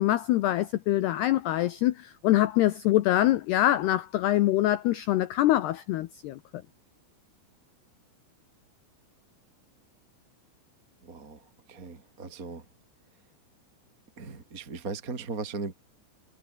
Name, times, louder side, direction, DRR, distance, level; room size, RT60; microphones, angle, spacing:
voice 1, 0.0-6.4, left 14 dB, 80° left, 2.4 m, -24 dB
voice 2, 11.0-12.7 14.2-15.7, right 4 dB, 25° right, 1.9 m, -38 dB
omnidirectional pair, 5.9 m